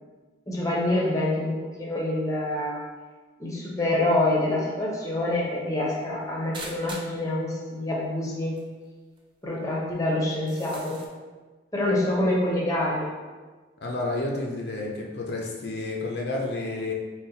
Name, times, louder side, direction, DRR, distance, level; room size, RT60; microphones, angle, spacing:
voice 1, 0.5-2.8 3.4-8.6 9.4-11.0 11.7-13.1, left 1 dB, 20° left, -4 dB, 0.7 m, -26 dB
sound 1, 6.5-7.2 8.2-8.3 8.6-8.7 9.2-9.3 10.3-11.1, right 2 dB, 25° right, 0.4 m, -41 dB
voice 2, 13.8-16.9, left 2 dB, 60° left, -1 dB, 0.5 m, -30 dB
4.0 x 2.2 x 3.8 m, 1.3 s
head